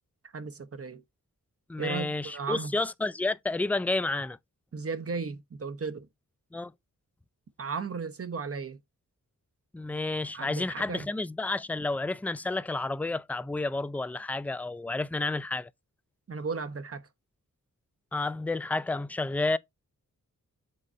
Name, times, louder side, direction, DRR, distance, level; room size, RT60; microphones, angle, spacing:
voice 1, 0.3-1.0 1.8-2.7 4.7-6.1 7.6-8.8 10.3-11.1 16.3-17.0, right 5 dB, 45° right, 0.9 m, -35 dB
voice 2, 1.7-4.4 6.5-6.7 9.7-15.7 18.1-19.6, left 2 dB, 5° left, 0.3 m, -30 dB
7.7 x 4.0 x 4.2 m
wide cardioid pair, 145°, 32 cm